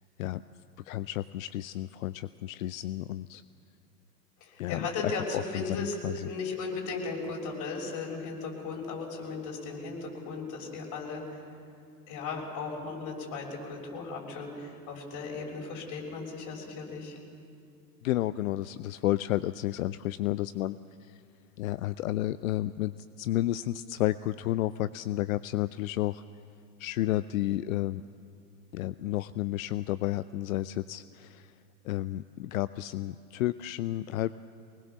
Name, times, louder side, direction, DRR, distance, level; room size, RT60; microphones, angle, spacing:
voice 1, 0.9-3.4 4.6-5.1 5.5-6.3 18.0-20.8 21.1-21.2 21.6-26.2 26.8-28.0 28.7-31.5 31.8-34.4, left 14 dB, 60° left, 15 dB, 0.6 m, -31 dB
voice 2, 4.4-11.4 12.1-17.2, left 4 dB, 40° left, 0 dB, 6.6 m, -36 dB
24.5 x 20.0 x 7.1 m, 2.4 s
figure-of-eight pair, 95°, 48 cm